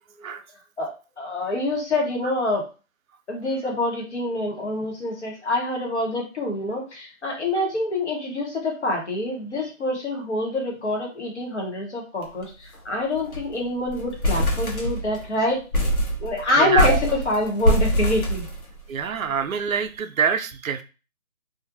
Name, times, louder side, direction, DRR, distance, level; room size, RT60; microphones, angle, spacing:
voice 1, 1.2-2.6 3.3-12.5 12.8-15.6 16.2-18.5, left 1 dB, 55° left, 1 dB, 1.1 m, -26 dB
sound 1, 12.2-12.4 12.7-12.8 13.1-13.5 13.9-15.3 15.7-19.0, equal, 85° left, 1.1 m, -24 dB
voice 2, 16.6-17.0 18.9-20.8, right 6 dB, 70° right, 8 dB, 0.5 m, -25 dB
2.5 x 2.3 x 2.6 m, 0.32 s
figure-of-eight pair, 165°, 42 cm